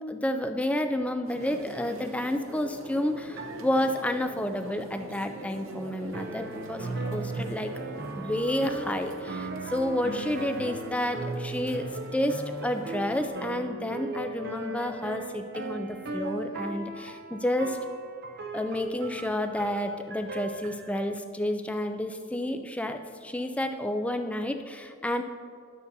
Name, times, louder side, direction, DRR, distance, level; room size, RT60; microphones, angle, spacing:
voice 1, 0.1-7.7 8.1-17.8 18.5-25.2, left 1 dB, 5° left, 7 dB, 0.3 m, -30 dB
sound 1, 1.2-13.3, right 1 dB, 75° right, 0.8 m, -44 dB
sound 2, 3.3-3.9 6.1-21.0, right 2 dB, 50° right, 0.5 m, -37 dB
11.5 x 6.8 x 2.7 m, 2.2 s
head